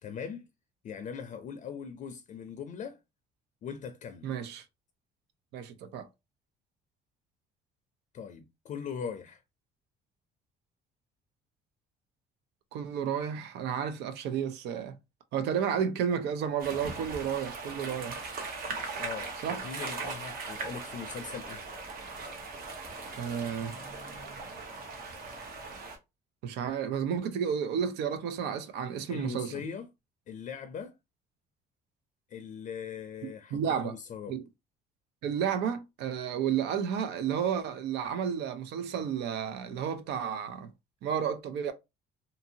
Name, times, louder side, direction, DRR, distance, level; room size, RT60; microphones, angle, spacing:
voice 1, 0.0-0.5 0.8-3.0 3.6-4.3 8.1-9.4 19.0-21.6 29.1-29.9 30.3-30.9 32.3-34.4, left 6 dB, 50° left, 0.4 m, -40 dB
voice 2, 4.2-4.6 5.5-6.1 12.7-15.0 15.3-18.2 19.4-19.6 23.2-23.8 26.4-29.6 33.5-33.9 34.3-34.4 35.2-40.7 41.0-41.7, right 8 dB, 80° right, 0.6 m, -32 dB
sound 1, 16.6-26.0, right 3 dB, 60° right, 1.0 m, -39 dB
2.8 x 2.6 x 2.7 m
cardioid pair, 110°, 17 cm